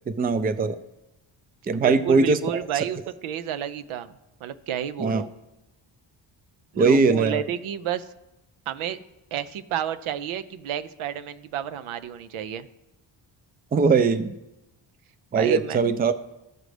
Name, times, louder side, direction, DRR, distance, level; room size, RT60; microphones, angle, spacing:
voice 1, 0.1-0.8 1.7-2.6 5.0-5.2 6.8-7.4 13.7-14.3 15.3-16.1, right 4 dB, 20° right, 12 dB, 0.4 m, -21 dB
voice 2, 1.7-4.1 4.4-5.3 6.7-8.1 8.7-9.0 9.3-12.7 15.3-15.8, right 9 dB, 85° right, 12 dB, 0.6 m, -30 dB
15.0 x 5.1 x 3.3 m, 0.93 s
cardioid pair, 95°, 48 cm